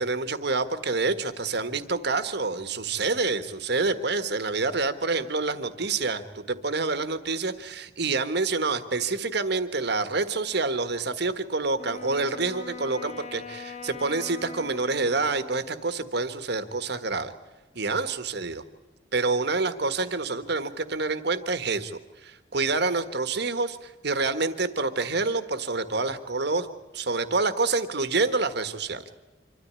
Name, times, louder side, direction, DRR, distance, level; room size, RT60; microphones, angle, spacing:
voice 1, 0.0-17.3 17.7-18.6 19.1-26.7 26.9-29.0, right 3 dB, 60° right, 11 dB, 1.5 m, -27 dB
Wind instrument woodwind instrument, 11.7-15.9, left 4 dB, 35° left, 1.1 m, -41 dB
26.0 x 13.5 x 9.6 m, 1.1 s
head